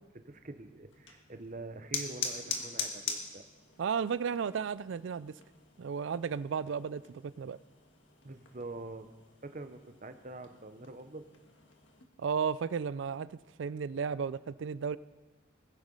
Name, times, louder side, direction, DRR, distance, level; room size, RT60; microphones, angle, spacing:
voice 1, 0.1-3.4 8.2-9.1 9.4-11.3, right 2 dB, 40° right, 8 dB, 0.8 m, -45 dB
sound 1, 0.9-12.0, left 5 dB, 70° left, 1.6 m, -43 dB
voice 2, 3.8-5.3 5.8-7.6 12.2-15.0, right 6 dB, 70° right, 18 dB, 0.4 m, -34 dB
20.5 x 8.0 x 5.5 m, 1.3 s
head